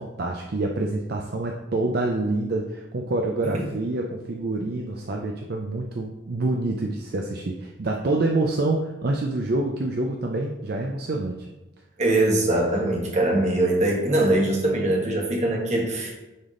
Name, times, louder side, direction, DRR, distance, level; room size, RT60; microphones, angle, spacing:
voice 1, 0.0-11.5, right 2 dB, 55° right, 1 dB, 0.5 m, -27 dB
voice 2, 12.0-16.2, right 1 dB, 35° right, -1 dB, 1.3 m, -22 dB
9.4 x 3.5 x 3.7 m, 1.0 s
head